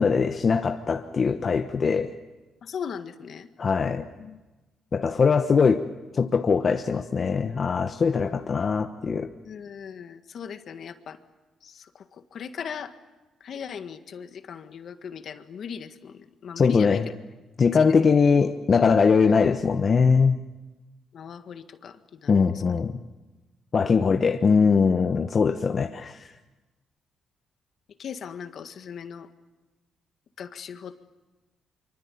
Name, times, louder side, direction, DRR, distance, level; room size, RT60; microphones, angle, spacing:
voice 1, 0.0-2.1 3.6-4.0 4.9-5.8 6.1-9.3 16.6-17.1 17.6-20.4 22.3-23.0 23.7-26.2, left 5 dB, 40° left, 6 dB, 1.1 m, -21 dB
voice 2, 2.6-3.5 4.2-4.4 9.4-11.2 11.6-12.9 13.4-17.1 17.7-18.0 21.1-22.4 28.0-29.3 30.4-30.9, left 7 dB, 60° left, 9 dB, 1.8 m, -38 dB
25.0 x 24.5 x 8.6 m, 1.2 s
cardioid pair, 90°, 0 cm